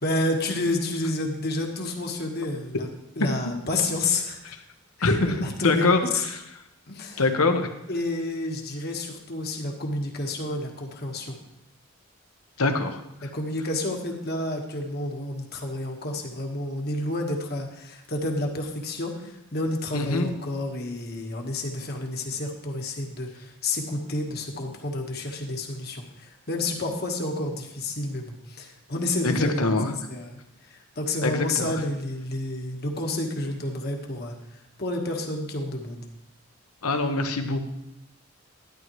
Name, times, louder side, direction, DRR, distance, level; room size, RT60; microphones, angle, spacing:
voice 1, 0.0-2.9 3.1-4.5 5.0-6.2 6.9-7.2 7.9-11.4 13.2-30.4 30.6-34.4 34.8-36.0, left 2 dB, 45° left, 2 dB, 1.4 m, -30 dB
voice 2, 5.0-6.0 7.2-7.7 12.6-13.3 19.9-20.3 29.2-29.9 31.2-31.7 36.8-37.6, left 3 dB, 80° left, 6 dB, 1.1 m, -24 dB
12.0 x 11.0 x 3.1 m, 0.84 s
head